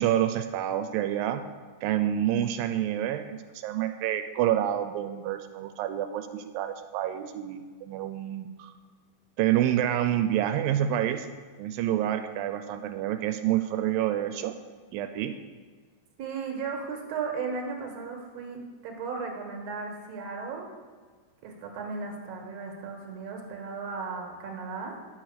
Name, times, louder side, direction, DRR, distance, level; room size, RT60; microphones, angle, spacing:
voice 1, 0.0-1.4 1.8-8.7 9.4-11.3 11.6-14.5 14.9-15.3, right 11 dB, 90° right, 8 dB, 2.3 m, -28 dB
voice 2, 16.2-20.7 21.4-25.0, right 5 dB, 55° right, 1 dB, 2.3 m, -35 dB
9.8 x 6.2 x 6.6 m, 1.5 s
omnidirectional pair, 4.0 m